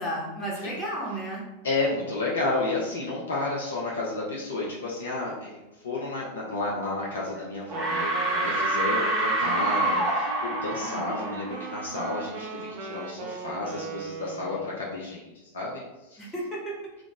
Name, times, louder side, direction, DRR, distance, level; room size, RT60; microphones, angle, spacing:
voice 1, 0.0-1.4 10.8-11.3 16.2-16.7, right 1 dB, 20° left, -5 dB, 1.0 m, -33 dB
voice 2, 1.6-15.8 16.1-16.3, left 2 dB, 65° left, -4 dB, 0.5 m, -31 dB
sound 1, 7.0-7.4 7.7-12.3, right 2 dB, 5° right, 0.8 m, -27 dB
Wind instrument woodwind instrument, 7.6-14.9, right 4 dB, 45° right, 0.4 m, -38 dB
2.3 x 2.0 x 3.7 m, 1.0 s
figure-of-eight pair, 90°, 0 cm